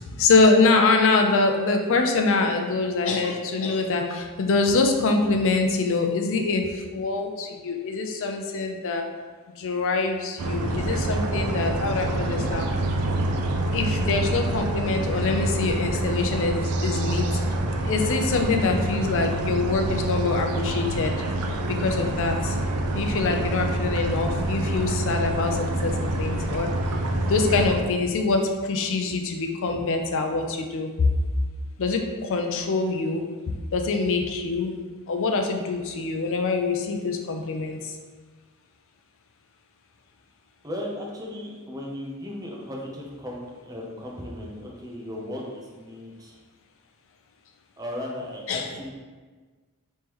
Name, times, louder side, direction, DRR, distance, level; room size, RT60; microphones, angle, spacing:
voice 1, 0.1-9.0 9.6-12.6 13.7-17.3 17.8-21.1 21.7-22.6 22.9-26.7 27.3-31.1 31.8-34.8 35.1-37.9 48.5-48.7, left 3 dB, 60° left, 4 dB, 0.4 m, -24 dB
sound 1, 10.4-27.8, right 1 dB, 85° right, 0.4 m, -26 dB
voice 2, 40.6-46.4 47.8-48.9, left 1 dB, 15° right, -2 dB, 0.6 m, -36 dB
3.6 x 3.2 x 2.9 m, 1.4 s
head